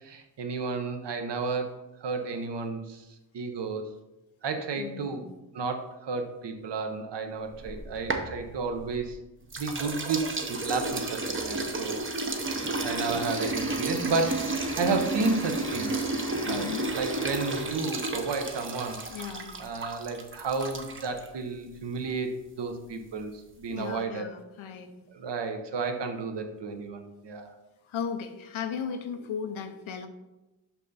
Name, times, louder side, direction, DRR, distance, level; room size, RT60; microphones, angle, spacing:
voice 1, 0.0-3.0 3.3-3.9 4.4-5.2 5.5-9.2 9.6-12.0 12.8-16.0 16.4-19.3 19.6-24.2 25.1-27.5, right 4 dB, 60° right, 6 dB, 1.0 m, -32 dB
voice 2, 4.8-5.2 16.5-16.9 19.1-19.5 23.7-24.9 27.8-30.1, left 7 dB, 90° left, 7 dB, 0.8 m, -36 dB
sound 1, 7.5-9.1 9.5-21.3, right 2 dB, 25° right, 0.7 m, -32 dB
sound 2, 12.4-17.9, equal, 5° left, 0.9 m, -41 dB
6.0 x 5.8 x 4.0 m, 1.0 s
wide cardioid pair, 130°, 46 cm